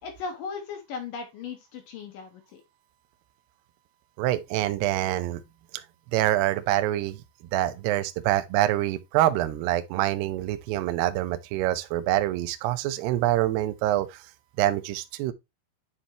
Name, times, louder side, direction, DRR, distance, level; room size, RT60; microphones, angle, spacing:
voice 1, 0.0-2.6, left 5 dB, 70° left, 2.1 m, -37 dB
voice 2, 4.2-5.4 6.1-7.2 7.5-14.2 14.6-15.3, right 14 dB, 85° right, 2.3 m, -25 dB
9.6 x 4.3 x 2.9 m
omnidirectional pair, 5.6 m